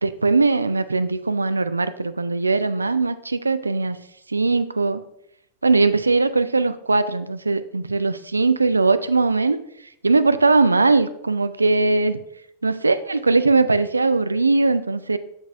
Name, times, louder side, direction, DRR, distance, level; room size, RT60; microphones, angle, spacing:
voice 1, 0.0-4.0 4.3-5.0 5.6-9.6 10.0-12.2 12.6-15.2, right 3 dB, 80° right, 13 dB, 0.3 m, -20 dB
7.9 x 5.9 x 2.6 m, 0.76 s
figure-of-eight pair, 90°, 0 cm